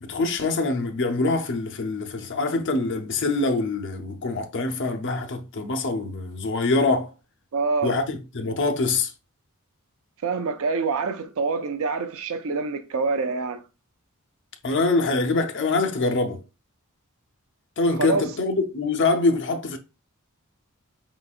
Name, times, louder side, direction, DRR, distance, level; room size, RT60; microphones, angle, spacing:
voice 1, 0.0-7.1 7.8-9.1 14.6-16.4 17.8-19.8, left 3 dB, 55° left, 0.7 m, -24 dB
voice 2, 7.5-8.0 10.2-13.6 17.9-18.3, right 4 dB, 65° right, 0.5 m, -26 dB
5.0 x 3.9 x 2.4 m
head